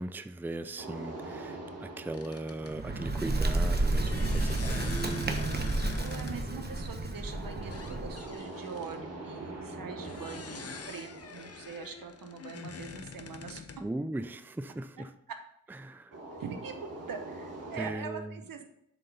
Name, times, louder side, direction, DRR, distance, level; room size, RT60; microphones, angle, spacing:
voice 1, 0.0-5.7 6.4-6.6 13.8-15.1 15.7-16.2 17.8-18.4, right 2 dB, 5° right, 11 dB, 0.4 m, -39 dB
sound 1, 0.8-3.8 7.2-12.6 16.1-17.9, right 2 dB, 45° right, 2.0 m, -44 dB
sound 2, 2.1-2.8 3.9-6.5 6.9-7.1 7.5-9.0 10.0-13.9, left 5 dB, 45° left, 0.8 m, -45 dB
Bird, 2.6-8.3, right 2 dB, 30° right, 1.1 m, -31 dB
voice 2, 4.2-4.6 6.0-13.8 15.0-15.4 16.3-18.6, right 5 dB, 75° right, 6 dB, 1.0 m, -43 dB
7.6 x 4.0 x 5.3 m, 0.78 s
cardioid pair, 45°, 35 cm